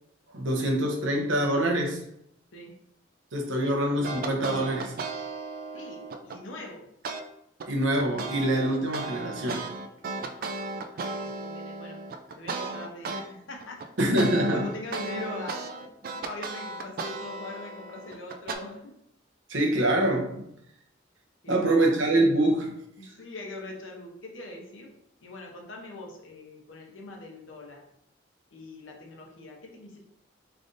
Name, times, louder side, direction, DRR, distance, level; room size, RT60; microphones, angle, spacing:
voice 1, 0.3-2.0 3.3-5.0 7.7-9.7 14.0-14.7 19.5-20.5 21.5-22.7, right 1 dB, 80° right, 1 dB, 0.8 m, -25 dB
sound 1, 4.0-6.4 7.0-7.2 7.6-13.2 13.6-18.5, right 3 dB, 50° right, 0.3 m, -35 dB
voice 2, 5.7-6.9 8.6-8.7 10.3-12.0 12.4-13.8 14.1-18.9 21.4-21.8 23.0-24.9 25.2-27.8 28.5-30.0, left 2 dB, 85° left, 0 dB, 0.8 m, -42 dB
3.8 x 3.3 x 2.6 m, 0.77 s
head